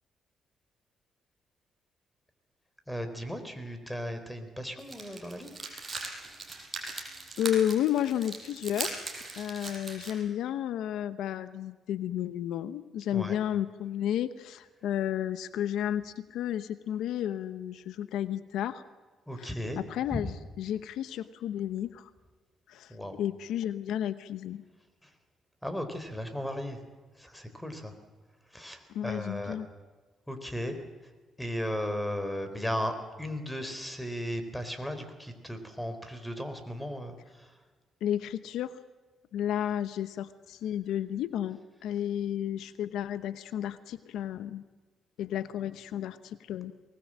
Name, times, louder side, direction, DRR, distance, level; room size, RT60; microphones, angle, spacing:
voice 1, 2.9-5.5 13.1-13.4 19.3-19.8 20.1-20.2 22.9-23.2 25.6-26.8 27.2-27.9 28.5-29.6 30.3-30.8 31.4-37.5, equal, 5° left, 8 dB, 3.9 m, -36 dB
sound 1, 4.8-10.1, right 3 dB, 25° right, 6.1 m, -39 dB
voice 2, 7.4-9.0 9.3-18.8 19.3-22.1 22.7-22.9 23.2-24.6 28.9-29.7 38.0-38.8 39.3-44.6 45.2-46.7, left 10 dB, 85° left, 13 dB, 0.9 m, -32 dB
23.5 x 20.0 x 7.5 m, 1.3 s
cardioid pair, 90°, 0 cm